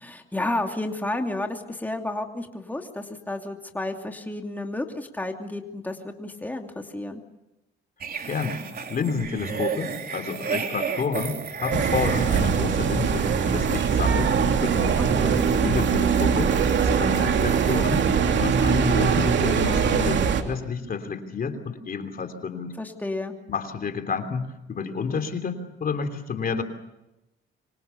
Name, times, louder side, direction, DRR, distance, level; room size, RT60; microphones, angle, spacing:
voice 1, 0.0-7.2 15.0-15.4 22.8-23.4, left 2 dB, 10° left, 3 dB, 2.7 m, -31 dB
sound 1, 8.0-18.2 18.4-18.6, right 5 dB, 50° right, 3.8 m, -34 dB
voice 2, 8.3-8.6 8.9-15.0 15.6-18.1 18.3-22.7 23.5-26.6, left 5 dB, 45° left, 7 dB, 3.3 m, -30 dB
sound 2, 11.7-20.4, right 6 dB, 65° right, 2.8 m, -22 dB
26.5 x 25.0 x 7.1 m, 0.94 s
cardioid pair, 90°, 20 cm